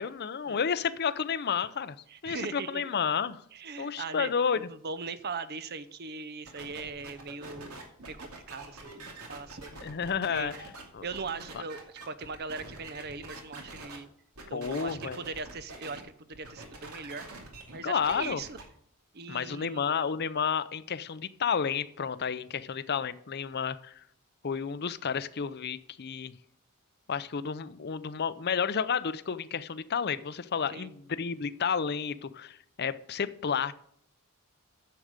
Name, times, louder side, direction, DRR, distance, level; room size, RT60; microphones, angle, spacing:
voice 1, 0.0-2.0 2.2-3.4 3.8-4.6 9.8-10.5 10.9-11.0 11.5-11.6 14.5-15.2 17.8-18.4 19.3-24.0 24.4-26.3 27.1-33.7, left 6 dB, 45° left, 14 dB, 0.5 m, -31 dB
voice 2, 2.1-2.8 3.5-7.8 8.1-9.7 10.3-10.6 11.0-14.1 14.5-17.2 17.7-18.6 19.1-20.1 30.7-31.0, right 4 dB, 45° right, 14 dB, 0.7 m, -40 dB
sound 1, 6.5-14.0 14.4-16.0 16.3-18.6, right 2 dB, 80° right, 2.5 m, -46 dB
10.0 x 7.7 x 5.1 m, 0.68 s
head